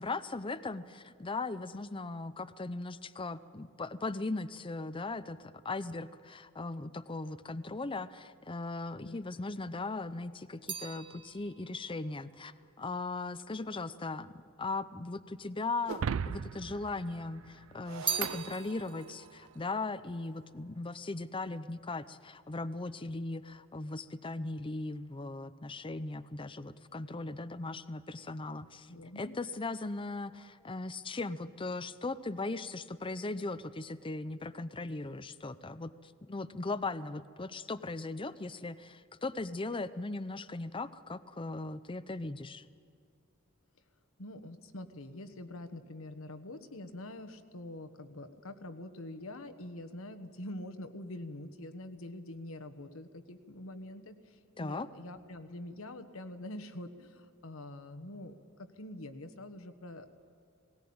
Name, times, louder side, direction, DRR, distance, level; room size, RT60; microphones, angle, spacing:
voice 1, 0.0-14.3 14.6-28.9 29.2-42.7 54.6-54.9, left 3 dB, 25° left, 14 dB, 0.6 m, -38 dB
sound 1, 9.7-14.1 14.9-15.7 16.0-17.1 17.5-21.0 21.3-21.8, right 7 dB, 25° right, 1.0 m, -42 dB
Shatter, 15.9-19.4, right 6 dB, 80° right, 0.4 m, -39 dB
voice 2, 28.9-29.3 44.2-60.1, left 1 dB, 85° left, 9 dB, 1.3 m, -45 dB
19.0 x 18.0 x 8.7 m, 2.4 s
head